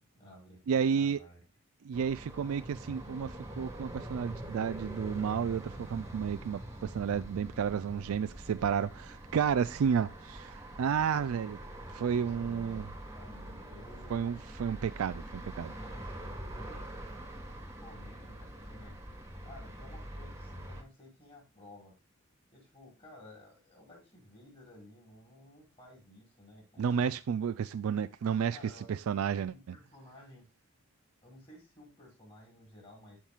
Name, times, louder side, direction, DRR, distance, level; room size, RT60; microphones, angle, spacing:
voice 1, 0.0-1.4 12.1-14.2 15.7-16.9 17.8-19.0 19.4-22.0 22.5-27.2 28.5-28.9 29.2-30.5 31.2-33.2, left 1 dB, 25° left, 5.5 m, -54 dB
voice 2, 0.7-1.2 1.8-11.6 11.9-12.9 14.1-15.7 26.8-29.8, right 7 dB, 80° right, 0.3 m, -31 dB
sound 1, 1.9-20.8, right 1 dB, 15° right, 1.6 m, -44 dB
14.0 x 5.8 x 2.4 m
head